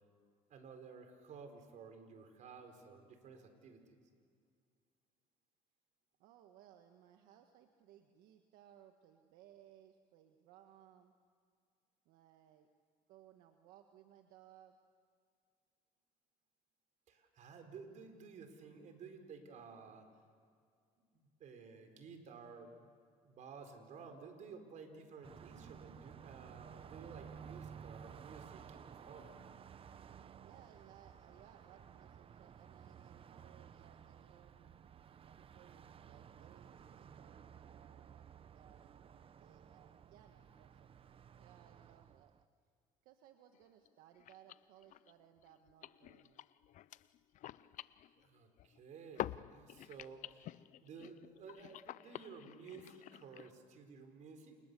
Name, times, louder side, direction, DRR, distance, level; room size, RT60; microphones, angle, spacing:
voice 1, 0.5-4.0 17.1-20.1 21.1-22.9 23.2-29.4 48.2-50.5 50.8-54.6, right 5 dB, 60° right, 6 dB, 4.7 m, -54 dB
voice 2, 6.2-11.1 12.1-12.7 13.1-14.8 30.4-34.7 35.3-40.9 41.4-42.3 43.0-46.4, right 11 dB, 85° right, 5 dB, 1.6 m, -63 dB
Car passing by, 25.2-42.4, right 7 dB, 40° right, 0.9 m, -55 dB
sound 1, 43.5-43.6 43.9-44.0 44.2-48.8 49.1-53.5, left 13 dB, 60° left, 0.6 m, -49 dB
30.0 x 28.0 x 7.0 m, 2.2 s
cardioid pair, 100°, 14 cm